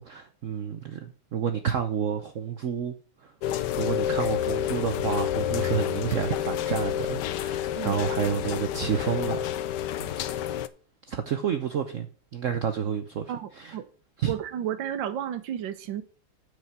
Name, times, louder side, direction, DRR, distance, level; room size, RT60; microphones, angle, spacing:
voice 1, 0.0-2.9 3.2-9.5 10.0-10.4 11.1-13.8 14.2-14.3, right 8 dB, 55° right, 0.9 m, -30 dB
Rain, 3.4-10.7, left 11 dB, 70° left, 1.2 m, -29 dB
voice 2, 13.3-13.9 14.3-16.0, right 10 dB, 80° right, 1.6 m, -32 dB
9.4 x 5.1 x 6.7 m
omnidirectional pair, 2.0 m